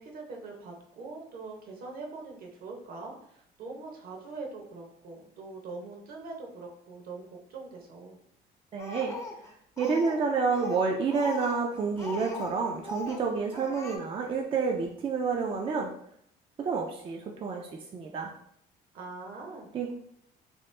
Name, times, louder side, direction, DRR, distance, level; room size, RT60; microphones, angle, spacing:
voice 1, 0.0-8.2 18.9-19.7, right 3 dB, 60° right, 1 dB, 0.8 m, -43 dB
voice 2, 8.7-9.2 9.8-15.9 16.6-18.3 19.7-19.9, right 5 dB, 35° right, 1 dB, 0.4 m, -29 dB
Speech, 8.8-10.2 10.5-12.6 12.8-13.2 13.5-14.0, left 3 dB, 20° left, 0.5 m, -40 dB
3.0 x 2.3 x 3.2 m, 0.71 s
cardioid pair, 110°, 17 cm